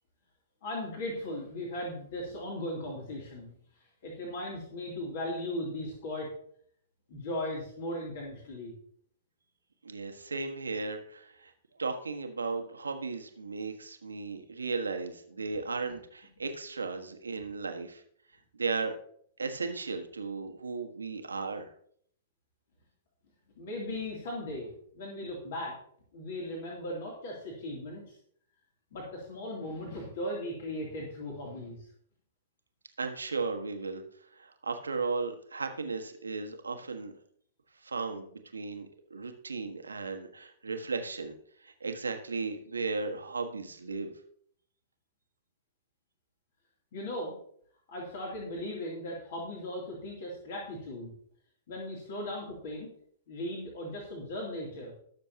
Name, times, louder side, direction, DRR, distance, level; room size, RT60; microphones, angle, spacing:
voice 1, 0.6-3.5 4.0-6.3 7.1-8.7 23.6-25.7 26.1-28.1 28.9-31.8 46.9-47.4 47.9-51.1 51.7-52.9 53.3-54.9, left 1 dB, 55° left, -2 dB, 2.8 m, -37 dB
voice 2, 9.8-11.5 11.8-18.0 18.6-19.0 19.4-21.7 33.0-34.0 34.3-37.1 37.8-41.3 41.6-44.1, right 4 dB, 80° right, 5 dB, 1.4 m, -35 dB
20.0 x 6.8 x 2.9 m, 0.63 s
figure-of-eight pair, 105°, 0 cm